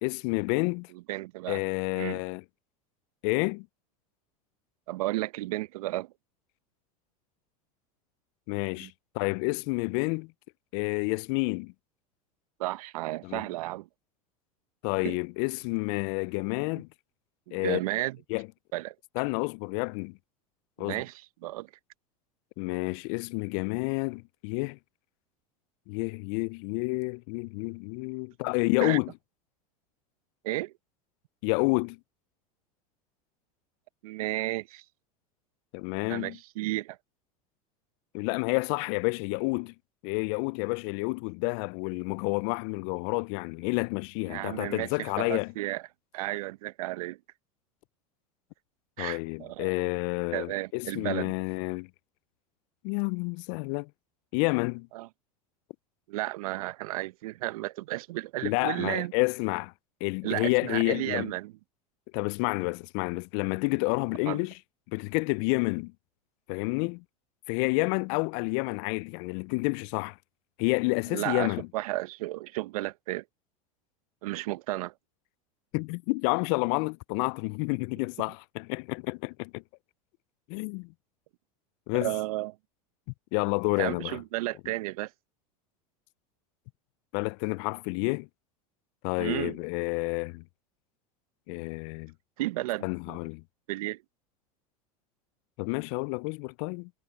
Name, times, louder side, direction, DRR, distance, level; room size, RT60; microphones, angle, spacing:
voice 1, 0.0-0.9 1.5-2.4 3.2-3.7 8.5-10.3 10.7-11.7 13.2-13.4 14.8-16.9 17.5-17.8 18.3-18.5 19.2-20.2 20.8-21.0 22.6-24.8 25.9-29.1 31.4-32.0 35.7-36.4 38.1-39.7 40.0-45.5 49.0-51.9 52.8-53.9 54.3-54.9 58.4-59.7 60.0-61.3 62.1-64.5 64.9-65.9 66.5-67.0 67.5-70.2 70.6-71.7 75.7-79.6 80.5-80.9 81.9-82.1 83.3-84.2 87.1-88.3 89.0-90.4 91.5-92.1 92.8-93.4 95.6-96.9, left 32 dB, 60° left, 0.4 m, -29 dB
voice 2, 1.1-1.6 2.0-2.2 4.9-6.1 8.8-8.9 12.6-13.9 15.0-15.2 17.5-18.2 18.7-18.9 20.8-21.7 28.8-29.0 30.4-30.7 34.0-34.8 36.1-37.0 44.3-45.8 46.1-47.2 49.0-49.7 50.3-51.3 54.9-55.1 56.1-59.1 60.2-61.5 64.3-64.4 71.1-73.2 74.2-74.9 82.0-82.6 83.8-85.1 89.2-89.6 92.4-93.2 93.7-94.0, right 18 dB, 75° right, 0.9 m, -33 dB
hypercardioid pair, 95°, 19 cm